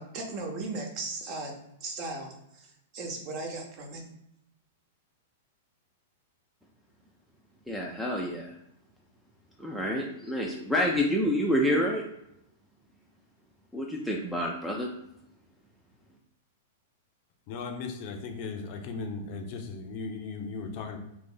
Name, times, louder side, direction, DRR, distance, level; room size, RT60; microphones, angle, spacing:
voice 1, 0.0-1.5 1.8-4.0, right 3 dB, 40° right, 1 dB, 0.9 m, -37 dB
voice 2, 7.7-8.5 9.6-12.0 13.7-14.9, equal, ahead, -3 dB, 0.5 m, -28 dB
voice 3, 17.5-21.0, left 4 dB, 45° left, 3 dB, 0.6 m, -37 dB
2.9 x 2.6 x 3.8 m, 0.81 s
figure-of-eight pair, 100°, 0 cm